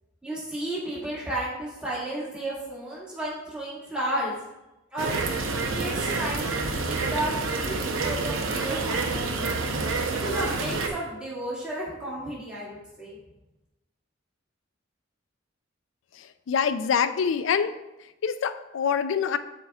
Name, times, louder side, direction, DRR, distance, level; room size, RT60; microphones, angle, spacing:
voice 1, 0.2-4.3 4.9-5.4 5.7-9.5 10.1-13.2, right 1 dB, 5° right, -8 dB, 1.9 m, -33 dB
sound 1, 5.0-10.9, right 3 dB, 85° right, 0.7 m, -28 dB
voice 2, 16.1-17.8 18.2-19.4, left 7 dB, 70° left, 11 dB, 0.4 m, -25 dB
11.0 x 4.5 x 2.3 m, 0.99 s
head